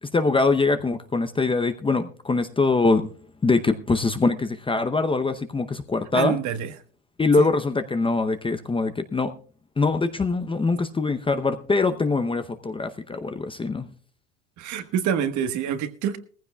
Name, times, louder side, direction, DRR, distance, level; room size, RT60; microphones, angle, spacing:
voice 1, 0.0-3.1 3.4-6.4 7.2-9.3 9.8-13.9, left 3 dB, 15° left, 0.7 m, -23 dB
voice 2, 6.1-6.7 7.4-7.5 14.6-16.2, right 8 dB, 50° right, 1.4 m, -26 dB
19.0 x 15.0 x 2.3 m
hypercardioid pair, 90°, 39 cm